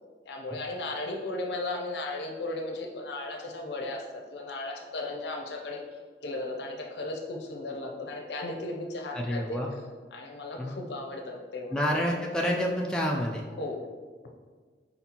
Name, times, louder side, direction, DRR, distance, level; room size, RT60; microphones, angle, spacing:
voice 1, 0.2-5.8 6.2-9.8 10.1-11.7 13.6-13.8, left 2 dB, 70° left, 2 dB, 0.6 m, -36 dB
voice 2, 9.1-9.7 10.6-10.7 11.7-13.5, equal, 5° left, -2 dB, 0.3 m, -28 dB
4.3 x 4.1 x 2.9 m, 1.5 s
head